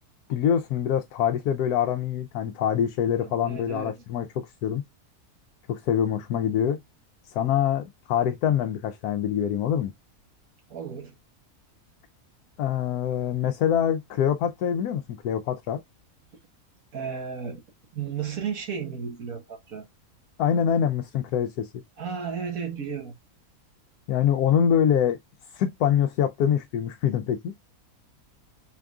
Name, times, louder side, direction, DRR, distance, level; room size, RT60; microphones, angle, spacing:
voice 1, 0.3-4.8 5.7-6.8 7.3-9.9 12.6-15.8 20.4-21.7 24.1-25.2 25.5-27.5, left 9 dB, 85° left, 1.1 m, -25 dB
voice 2, 3.1-4.0 10.7-11.1 16.9-17.6 17.9-19.8 22.0-23.1, right 6 dB, 65° right, 1.7 m, -34 dB
4.4 x 3.5 x 2.4 m
omnidirectional pair, 1.6 m